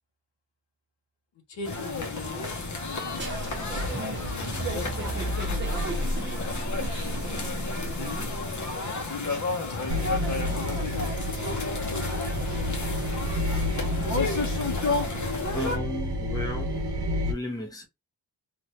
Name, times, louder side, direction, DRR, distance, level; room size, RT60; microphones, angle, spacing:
voice 1, 1.5-5.9 6.9-9.3 9.6-12.0 12.8-13.6, left 3 dB, 80° left, 1.0 m, -44 dB
sound 1, 1.6-15.8, left 3 dB, 45° left, 0.8 m, -32 dB
sound 2, 3.1-8.7, equal, 25° right, 0.7 m, -32 dB
sound 3, 9.9-17.3, left 1 dB, 75° right, 1.1 m, -30 dB
voice 2, 15.5-16.8 17.3-17.8, left 1 dB, 10° left, 0.7 m, -34 dB
3.1 x 2.5 x 2.8 m
wide cardioid pair, 160°, 42 cm